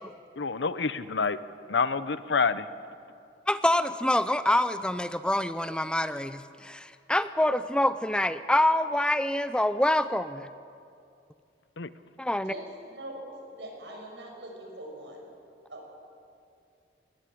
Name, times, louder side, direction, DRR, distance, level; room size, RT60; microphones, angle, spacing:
voice 1, 0.4-1.4 1.7-2.7 11.8-11.9, left 5 dB, 70° left, 15 dB, 0.7 m, -27 dB
voice 2, 3.5-10.5 12.2-12.5, left 1 dB, 5° left, 13 dB, 0.4 m, -26 dB
voice 3, 12.4-13.2 13.5-15.3 15.7-15.9, right 1 dB, 80° right, 1 dB, 5.6 m, -42 dB
20.5 x 18.0 x 8.6 m, 2.5 s
head